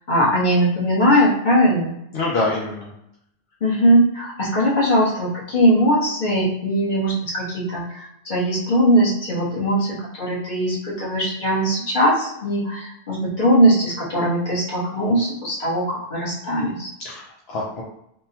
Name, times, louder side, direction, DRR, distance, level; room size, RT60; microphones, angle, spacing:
voice 1, 0.1-1.9 3.6-16.9, equal, 45° left, -5 dB, 1.2 m, -20 dB
voice 2, 2.1-2.9 17.0-17.8, left 2 dB, 70° left, -4 dB, 0.9 m, -25 dB
3.5 x 2.1 x 2.7 m, 0.78 s
omnidirectional pair, 1.1 m